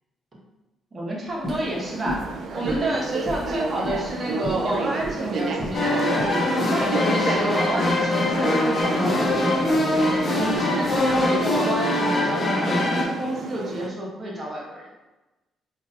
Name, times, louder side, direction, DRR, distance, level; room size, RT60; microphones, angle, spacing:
voice 1, 0.9-6.3 6.7-9.8 10.3-14.9, right 1 dB, 35° right, -3 dB, 1.2 m, -29 dB
sound 1, 1.3-11.5, equal, 10° right, 1.4 m, -37 dB
sound 2, 1.5-13.9, right 3 dB, 65° right, 0.4 m, -33 dB
sound 3, 5.7-13.0, left 1 dB, 45° left, 0.8 m, -22 dB
3.7 x 3.5 x 2.8 m, 1.1 s
cardioid pair, 90°, 0 cm